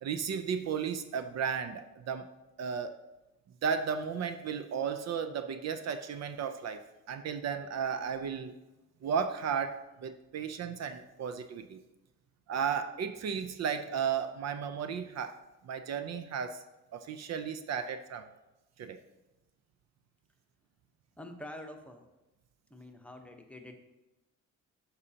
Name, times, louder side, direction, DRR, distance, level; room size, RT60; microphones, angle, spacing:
voice 1, 0.0-2.3 2.6-3.0 3.6-8.6 9.0-11.8 12.5-15.3 15.6-16.6 16.9-18.3 18.8-19.0, right 7 dB, 60° right, 9 dB, 0.6 m, -34 dB
voice 2, 21.2-22.1 22.7-23.8, left 1 dB, 5° left, 3 dB, 0.9 m, -46 dB
10.5 x 5.6 x 2.8 m, 1.0 s
cardioid pair, 90°, 30 cm